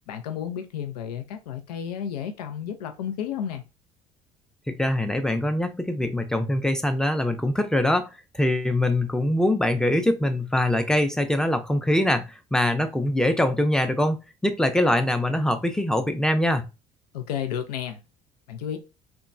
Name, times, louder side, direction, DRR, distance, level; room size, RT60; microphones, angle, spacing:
voice 1, 0.1-3.6 17.1-18.0 18.5-18.8, left 9 dB, 85° left, 0.4 m, -32 dB
voice 2, 4.7-16.6, left 1 dB, 5° left, 0.5 m, -23 dB
2.9 x 2.2 x 2.5 m
hypercardioid pair, 60°, 20 cm